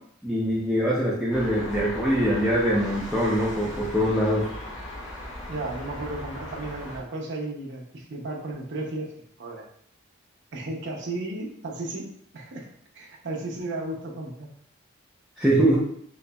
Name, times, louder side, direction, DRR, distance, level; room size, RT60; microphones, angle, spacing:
voice 1, 0.2-4.5 15.4-15.8, equal, ahead, -8 dB, 0.5 m, -23 dB
sound 1, 1.3-7.0, left 1 dB, 35° left, 1.1 m, -38 dB
voice 2, 5.5-9.1 9.4-9.6 10.5-12.1 12.3-12.7 12.9-14.5, right 2 dB, 60° right, 0 dB, 0.7 m, -34 dB
3.9 x 2.9 x 2.2 m, 0.65 s
head